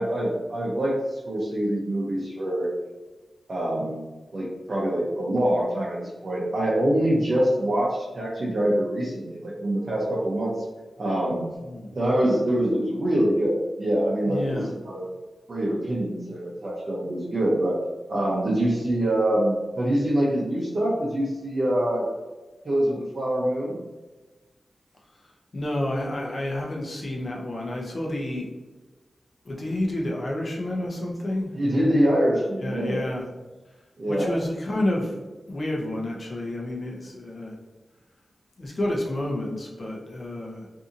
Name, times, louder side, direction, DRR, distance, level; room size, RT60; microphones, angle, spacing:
voice 1, 0.0-2.7 3.5-4.0 4.3-10.5 11.0-11.5 11.9-15.0 15.5-17.8 18.1-22.1 22.6-23.8 31.6-33.0 34.0-34.3, right 1 dB, 55° right, -6 dB, 0.6 m, -25 dB
voice 2, 11.6-11.9 14.2-14.7 25.2-28.5 29.4-31.5 32.6-33.3 34.1-35.2 35.5-37.6 38.6-40.7, left 1 dB, 45° left, -2 dB, 0.6 m, -30 dB
2.6 x 2.6 x 2.5 m, 1.2 s
wide cardioid pair, 110°, 0 cm